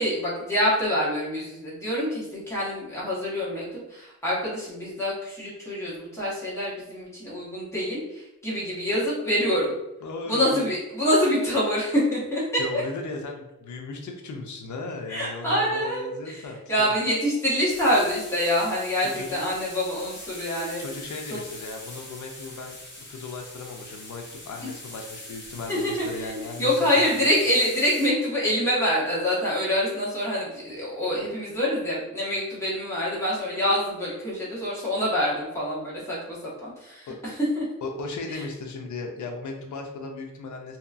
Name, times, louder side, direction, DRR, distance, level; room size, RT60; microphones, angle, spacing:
voice 1, 0.0-9.7 10.3-12.8 15.1-20.8 21.3-21.4 24.6-24.7 25.7-26.3 26.6-37.7 38.3-38.4, equal, 10° left, -8 dB, 1.1 m, -26 dB
voice 2, 10.0-10.7 12.6-16.9 19.0-19.4 20.8-22.8 23.1-27.3 37.1-37.2 37.8-40.8, left 3 dB, 70° left, 2 dB, 0.5 m, -36 dB
sound 1, 17.7-28.1, left 1 dB, 40° left, 0.7 m, -43 dB
2.8 x 2.2 x 2.4 m, 0.94 s
wide cardioid pair, 130°, 31 cm